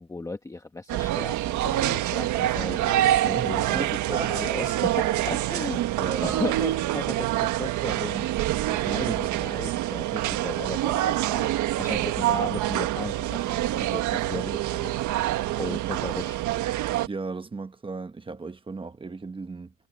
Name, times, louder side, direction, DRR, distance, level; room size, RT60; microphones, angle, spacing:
voice 1, 0.0-2.9 3.2-5.8 6.2-8.3 8.7-15.2 15.5-16.4, left 3 dB, 10° left, 1.5 m, -36 dB
sound 1, 0.9-17.1, right 14 dB, 55° right, 1.7 m, -26 dB
voice 2, 3.3-4.4 6.0-6.4 6.8-7.3 17.1-19.7, right 4 dB, 15° right, 1.2 m, -36 dB
cardioid pair, 130°, 35 cm